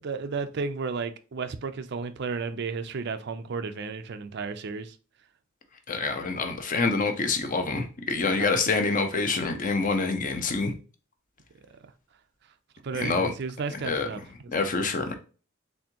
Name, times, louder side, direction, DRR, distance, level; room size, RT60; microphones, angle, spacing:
voice 1, 0.0-4.9 8.3-8.6 12.8-14.2, right 4 dB, 55° right, 0.5 m, -33 dB
voice 2, 5.9-10.7 12.9-13.3 13.7-14.1 14.5-15.1, left 3 dB, 40° left, 0.7 m, -26 dB
4.3 x 3.4 x 2.8 m
head